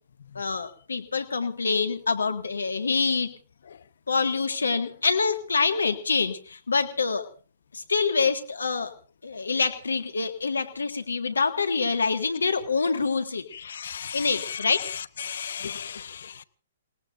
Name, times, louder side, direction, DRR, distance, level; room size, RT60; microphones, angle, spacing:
voice 1, 0.4-3.3 4.1-7.3 7.7-8.9 9.2-13.5 14.1-14.9, left 4 dB, 85° left, 1.9 m, -26 dB
voice 2, 13.7-14.6 15.2-16.4, left 7 dB, 65° left, 0.9 m, -35 dB
28.5 x 18.0 x 2.6 m
hypercardioid pair, 125°, 0 cm